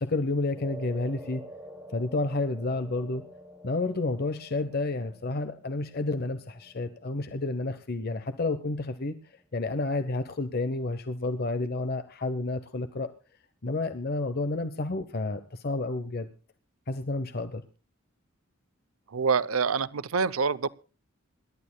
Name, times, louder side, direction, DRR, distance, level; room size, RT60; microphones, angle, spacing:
voice 1, 0.0-1.4 1.9-3.2 3.6-9.2 9.5-13.1 13.6-16.3 16.9-17.6, left 2 dB, 50° left, 0.8 m, -30 dB
sound 1, 0.6-9.0, right 1 dB, 5° right, 2.6 m, -48 dB
voice 2, 19.1-20.7, right 5 dB, 90° right, 0.6 m, -26 dB
27.0 x 12.0 x 2.2 m
head